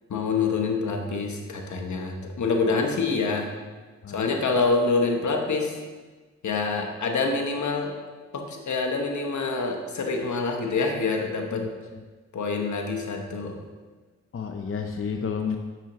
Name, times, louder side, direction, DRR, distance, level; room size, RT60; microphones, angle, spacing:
voice 1, 0.1-3.5 4.1-5.8 6.4-7.9 8.3-11.7 12.3-13.6, left 4 dB, 75° left, 2 dB, 1.0 m, -26 dB
voice 2, 14.3-15.6, left 6 dB, 45° left, 5 dB, 0.6 m, -30 dB
7.3 x 7.1 x 3.1 m, 1.4 s
cardioid pair, 55°, 29 cm